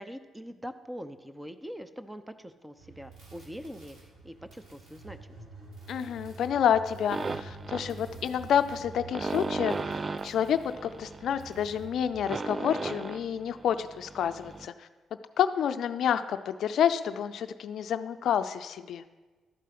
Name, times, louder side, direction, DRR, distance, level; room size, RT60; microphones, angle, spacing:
voice 1, 0.0-5.4, equal, 10° right, 11 dB, 0.7 m, -43 dB
sound 1, 2.8-12.2, right 4 dB, 65° right, 3.4 m, -48 dB
voice 2, 5.9-10.0 10.2-14.7 15.4-19.0, left 9 dB, 70° left, 11 dB, 0.4 m, -29 dB
sound 2, 7.1-14.7, right 3 dB, 35° right, 0.4 m, -36 dB
12.5 x 4.6 x 5.9 m, 1.3 s
supercardioid pair, 60°, 0 cm